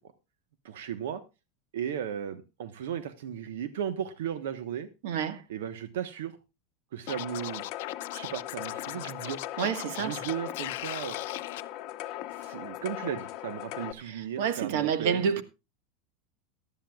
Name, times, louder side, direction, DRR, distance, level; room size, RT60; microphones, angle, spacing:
voice 1, 0.6-1.2 1.7-4.9 5.5-6.3 6.9-7.6 8.1-9.4 10.0-11.2 12.3-15.4, right 9 dB, 90° right, 1.2 m, -35 dB
voice 2, 5.0-5.4 9.6-10.2 14.0-15.4, right 7 dB, 65° right, 1.4 m, -29 dB
Scratching (performance technique), 7.1-11.6, left 17 dB, 65° left, 0.6 m, -39 dB
sound 1, 7.1-13.9, left 14 dB, 40° left, 0.9 m, -39 dB
18.5 x 12.5 x 2.4 m
supercardioid pair, 165°, 0 cm